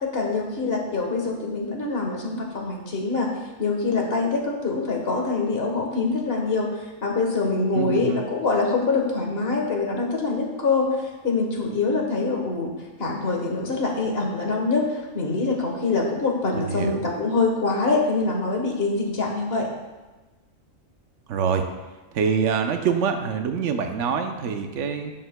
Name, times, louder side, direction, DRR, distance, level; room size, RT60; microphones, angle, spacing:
voice 1, 0.0-3.3 3.6-6.7 7.0-10.9 11.2-12.7 13.0-19.7, left 3 dB, 50° left, 0 dB, 1.5 m, -24 dB
voice 2, 7.7-8.2 16.5-17.0 21.3-21.6 22.1-25.1, right 6 dB, 70° right, 6 dB, 1.0 m, -25 dB
10.5 x 7.7 x 2.2 m, 1.2 s
omnidirectional pair, 1.3 m